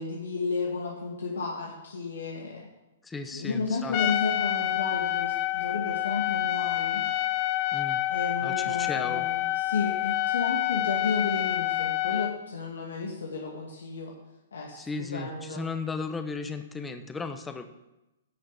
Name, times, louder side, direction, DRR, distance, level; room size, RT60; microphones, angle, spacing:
voice 1, 0.0-2.7 3.3-7.0 8.1-14.1 14.5-15.7, left 4 dB, 90° left, -1 dB, 2.1 m, -32 dB
voice 2, 3.0-4.0 7.7-8.0 8.4-9.3 14.8-17.6, left 4 dB, 10° left, 8 dB, 1.0 m, -35 dB
Trumpet, 3.9-12.3, left 15 dB, 40° left, 0.7 m, -28 dB
11.5 x 6.6 x 7.7 m, 0.97 s
hypercardioid pair, 140°, 0 cm